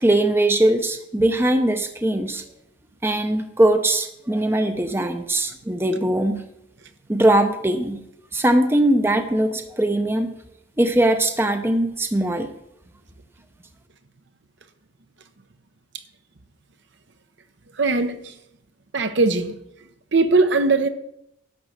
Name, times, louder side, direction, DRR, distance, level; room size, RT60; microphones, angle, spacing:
voice 1, 0.0-2.4 3.0-6.4 7.1-8.0 8.3-10.3 10.8-12.5, right 1 dB, 10° right, 0.7 m, -20 dB
voice 2, 17.8-18.3 18.9-19.5 20.1-20.9, right 3 dB, 60° right, 0.9 m, -19 dB
11.5 x 7.1 x 6.5 m
head